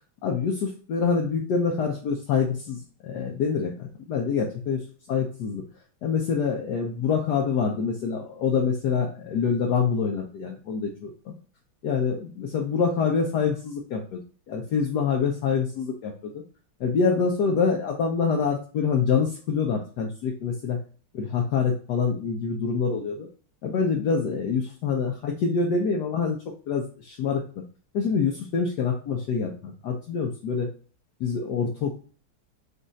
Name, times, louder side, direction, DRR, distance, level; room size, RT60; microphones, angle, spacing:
voice 1, 0.2-5.6 6.0-11.3 11.8-14.2 14.5-16.4 16.8-20.8 21.1-23.3 23.6-26.4 26.7-27.4 27.9-30.7 31.2-32.0, left 5 dB, 65° left, 1 dB, 1.1 m, -26 dB
5.3 x 2.4 x 3.8 m, 0.40 s
omnidirectional pair, 2.3 m